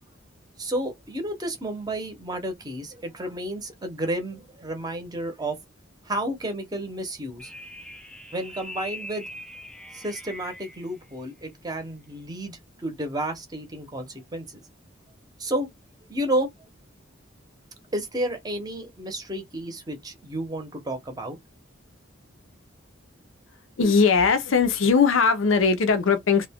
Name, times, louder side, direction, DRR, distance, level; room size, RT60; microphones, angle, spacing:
voice 1, 0.6-5.6 6.0-7.5 8.3-9.3 9.9-14.6 15.4-15.7 16.1-16.5 17.9-21.4, right 1 dB, 20° right, 0.7 m, -31 dB
sound 1, 7.4-10.9, left 1 dB, 5° left, 0.3 m, -41 dB
voice 2, 23.8-26.5, left 5 dB, 85° left, 0.6 m, -20 dB
2.4 x 2.1 x 3.4 m
head